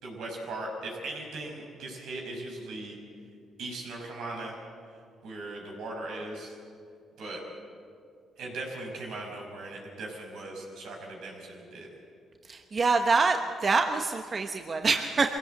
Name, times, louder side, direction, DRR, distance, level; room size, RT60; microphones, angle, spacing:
voice 1, 0.0-3.0 3.6-4.5 5.2-6.6 7.2-7.4 8.4-11.9, right 2 dB, 80° right, 0 dB, 5.7 m, -39 dB
voice 2, 12.5-15.4, right 4 dB, 40° right, 5 dB, 1.0 m, -26 dB
23.5 x 16.5 x 7.7 m, 2.3 s
cardioid pair, 90°, 0 cm